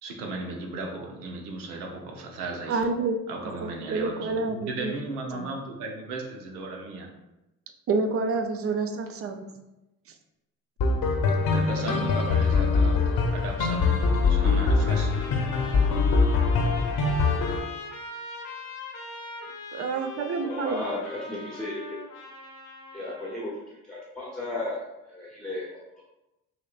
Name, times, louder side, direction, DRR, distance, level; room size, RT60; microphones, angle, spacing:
voice 1, 0.0-2.8 3.3-7.1 11.5-13.0 13.3-15.1, right 2 dB, 75° right, 1 dB, 0.9 m, -36 dB
voice 2, 2.7-3.2 3.6-4.9 5.3-5.5 7.9-9.4 19.7-20.8, right 4 dB, 30° right, 7 dB, 0.6 m, -28 dB
sound 1, 10.8-17.6, left 4 dB, 50° left, 0.9 m, -23 dB
Trumpet, 14.8-23.5, left 3 dB, 75° left, 0.9 m, -41 dB
voice 3, 20.4-22.0 22.9-26.1, left 1 dB, ahead, -5 dB, 0.9 m, -35 dB
5.7 x 3.0 x 2.4 m, 0.94 s
figure-of-eight pair, 50°, 46 cm